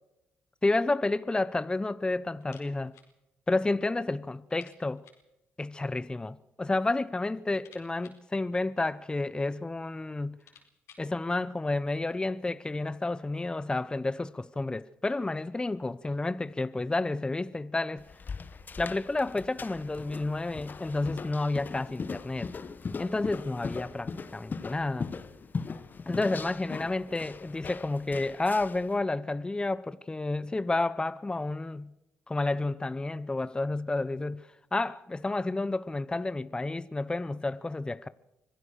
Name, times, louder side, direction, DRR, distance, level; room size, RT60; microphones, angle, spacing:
voice 1, 0.6-2.9 3.5-5.0 5.6-10.4 11.0-18.1 18.8-22.5 23.0-25.1 26.1-31.9 32.3-34.4 34.7-38.1, left 2 dB, 20° left, 0.8 m, -30 dB
sound 1, 2.4-3.2 3.4-3.5 3.9-4.0 4.5-5.3 6.3-6.9 7.2-9.2 9.9-10.0 10.2-11.2, left 7 dB, 85° left, 4.5 m, -59 dB
sound 2, 18.0-28.9, left 5 dB, 45° left, 1.6 m, -39 dB
25.0 x 16.5 x 6.6 m
supercardioid pair, 65°, 5 cm